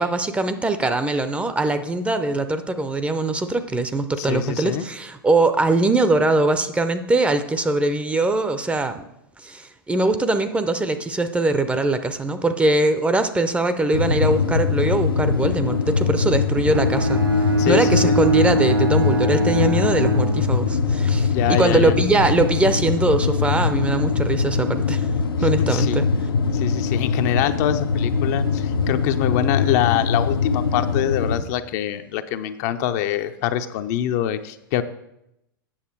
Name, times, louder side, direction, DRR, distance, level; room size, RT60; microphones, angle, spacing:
voice 1, 0.0-9.0 9.4-25.1 25.4-26.1, right 2 dB, 10° right, 10 dB, 0.6 m, -22 dB
voice 2, 4.2-4.9 17.6-18.2 21.3-21.9 25.4-26.0 26.5-34.8, left 11 dB, 45° left, 9 dB, 0.5 m, -24 dB
sound 1, 13.9-31.4, left 5 dB, 80° left, 0.7 m, -22 dB
Bowed string instrument, 16.7-21.0, equal, 75° right, 1.5 m, -23 dB
8.8 x 6.7 x 4.6 m, 0.83 s
figure-of-eight pair, 100°, 12 cm